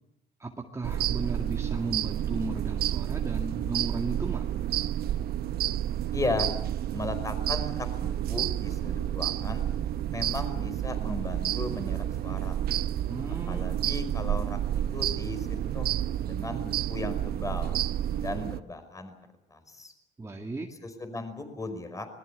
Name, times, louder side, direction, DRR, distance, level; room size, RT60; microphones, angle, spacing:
voice 1, 0.4-4.5 13.1-13.7 20.2-20.7, right 2 dB, 15° right, 1 dB, 2.2 m, -35 dB
sound 1, 0.8-18.6, right 11 dB, 65° right, 1.0 m, -30 dB
voice 2, 6.1-6.5 6.9-9.7 10.1-12.6 13.5-15.9 16.2-17.8 18.1-19.1 19.5-19.9 20.8-22.1, left 2 dB, 20° left, 8 dB, 5.0 m, -36 dB
25.5 x 21.0 x 8.2 m, 0.83 s
cardioid pair, 110°, 17 cm